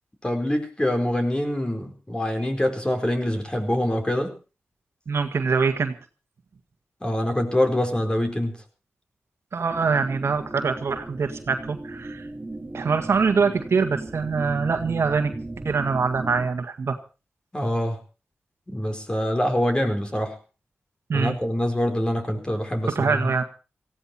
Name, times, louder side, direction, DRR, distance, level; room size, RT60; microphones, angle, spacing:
voice 1, 0.2-4.3 7.0-8.6 17.5-18.0 18.7-20.4 21.1-23.3, left 1 dB, 20° left, 5 dB, 4.5 m, -25 dB
voice 2, 5.1-6.0 9.5-12.3 12.7-15.3 15.6-17.0 21.1-21.4 22.9-23.4, right 5 dB, 70° right, 7 dB, 1.8 m, -24 dB
sound 1, 9.7-16.5, right 2 dB, 35° right, 3.5 m, -37 dB
18.0 x 15.5 x 4.3 m, 0.34 s
cardioid pair, 45°, 5 cm